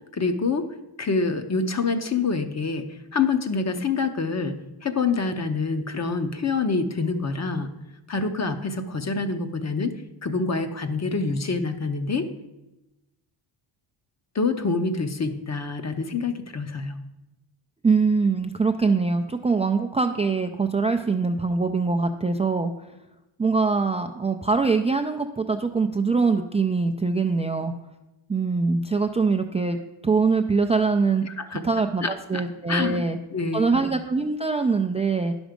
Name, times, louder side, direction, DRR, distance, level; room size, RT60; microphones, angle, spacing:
voice 1, 0.1-0.7 1.0-2.8 3.1-7.7 8.1-9.9 10.2-12.3 14.3-17.0 31.2-31.6 32.0-32.4 32.7-33.0 33.3-33.8, left 4 dB, 35° left, 9 dB, 0.8 m, -26 dB
voice 2, 17.8-22.7 23.4-27.7 28.3-29.8 30.0-31.2 31.6-33.2 33.5-35.3, right 4 dB, 15° right, 4 dB, 0.3 m, -23 dB
10.0 x 6.2 x 5.1 m, 0.98 s
cardioid pair, 110°, 50 cm